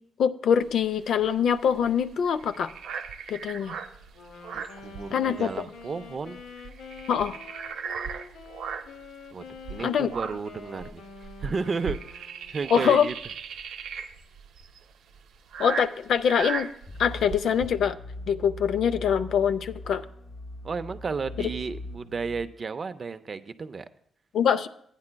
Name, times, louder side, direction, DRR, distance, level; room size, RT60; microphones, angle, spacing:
voice 1, 0.2-2.7 3.3-3.8 5.1-5.5 7.1-7.4 9.8-10.1 12.7-13.1 15.6-16.7 17.0-18.0 18.3-20.0 21.4-21.5 24.3-24.7, left 8 dB, 65° left, 11 dB, 0.4 m, -24 dB
sound 1, 0.6-5.6 5.8-6.0 6.4-9.1 9.6-17.7, right 6 dB, 85° right, 0.6 m, -37 dB
Wind instrument woodwind instrument, 4.1-12.8, left 4 dB, 85° left, 0.9 m, -46 dB
voice 2, 4.5-6.4 9.3-13.1 20.6-23.9, right 4 dB, 35° right, 12 dB, 0.4 m, -33 dB
sound 2, 16.9-22.4, left 1 dB, 30° left, 0.7 m, -41 dB
15.5 x 9.6 x 2.2 m, 0.67 s
cardioid pair, 145°, 0 cm